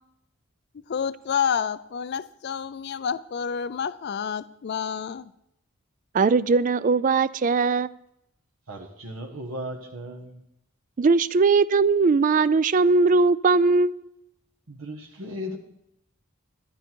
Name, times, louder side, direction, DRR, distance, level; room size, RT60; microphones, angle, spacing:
voice 1, 0.9-5.3, left 7 dB, 50° left, 15 dB, 0.4 m, -29 dB
voice 2, 6.1-7.9 11.0-14.0, right 4 dB, 40° right, 19 dB, 0.3 m, -20 dB
voice 3, 8.7-10.4 14.7-15.6, equal, 75° right, 1 dB, 1.3 m, -36 dB
12.5 x 11.5 x 4.5 m, 0.80 s
head